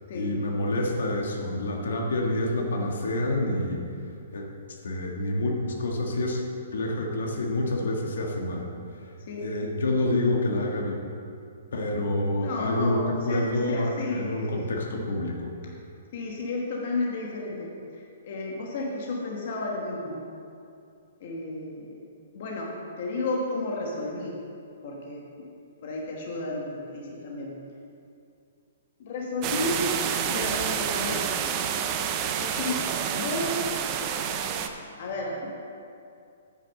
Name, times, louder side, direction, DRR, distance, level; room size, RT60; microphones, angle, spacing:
voice 1, 0.1-3.8 4.3-4.5 4.8-6.4 6.7-8.7 9.4-11.0 11.7-15.5, left 1 dB, 75° left, 0 dB, 1.6 m, -27 dB
voice 2, 12.4-14.7 16.1-20.2 21.2-21.9 22.3-22.7 23.0-24.4 24.8-25.5 25.8-27.5 29.0-31.3 32.4-32.9 33.1-33.5 35.0-35.5, left 2 dB, 40° left, -2 dB, 1.3 m, -32 dB
sound 1, 29.4-34.7, right 8 dB, 20° right, 0.4 m, -28 dB
8.9 x 6.4 x 6.3 m, 2.5 s
hypercardioid pair, 175°, 0 cm